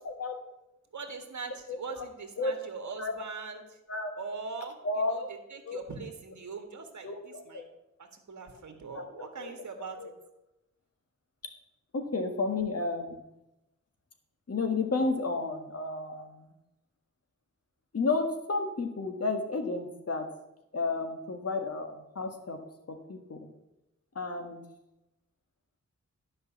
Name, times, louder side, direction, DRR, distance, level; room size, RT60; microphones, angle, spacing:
voice 1, 0.0-0.4 1.7-2.1 2.4-2.6 3.0-3.1 3.9-4.1 4.8-5.1 5.7-5.8 7.0-7.6 8.9-9.6 10.0-10.1 11.9-13.2 14.5-16.5 17.9-20.3 20.7-22.6 23.1-23.5 24.2-24.6, left 3 dB, 55° left, 5 dB, 1.8 m, -32 dB
voice 2, 0.9-3.8 4.2-7.7 8.0-10.0, right 4 dB, 70° right, 5 dB, 1.7 m, -41 dB
11.0 x 5.5 x 7.2 m, 0.91 s
wide cardioid pair, 85°, 30 cm